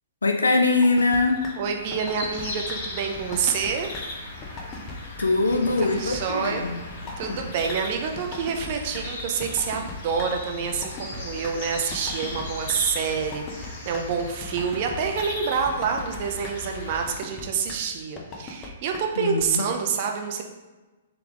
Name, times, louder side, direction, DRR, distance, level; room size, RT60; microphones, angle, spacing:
voice 1, 0.2-1.4 5.2-6.8 19.2-19.6, left 3 dB, 85° left, 3 dB, 0.4 m, -22 dB
sound 1, 0.8-1.2 1.4-1.5 1.9-2.4 2.7-2.8 3.2-3.7 3.9-4.0 4.4-4.9 5.2-5.3 5.7-6.2 6.4-6.5 6.9-7.4 7.7-7.8 8.2-8.7 8.9-9.0 9.4-10.3 10.7-11.5 11.9-12.4 12.7-12.8 13.2-13.7 13.9-14.0 14.4-14.9 15.2-15.3 15.7-16.2 16.4-16.5 16.9-17.4 17.7-17.8 18.2-18.7 18.9-19.0 19.4-19.5, left 4 dB, 25° left, 0.7 m, -38 dB
Dawn chorus distant ocean, 1.2-17.2, left 3 dB, 55° left, 1.1 m, -37 dB
voice 2, 1.6-3.9 5.9-6.6 7.2-20.4, right 6 dB, 45° right, 3 dB, 0.6 m, -27 dB
3.4 x 3.4 x 3.5 m, 1.2 s
figure-of-eight pair, 115°, 0 cm